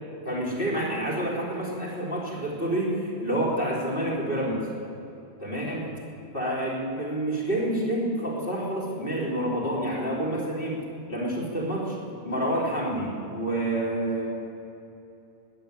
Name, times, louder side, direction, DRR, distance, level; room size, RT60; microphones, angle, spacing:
voice 1, 0.3-4.6 5.4-5.8 6.3-10.8 11.1-12.0 12.2-14.3, right 1 dB, 40° left, -5 dB, 3.6 m, -28 dB
19.0 x 7.0 x 9.0 m, 2.8 s
omnidirectional pair, 1.4 m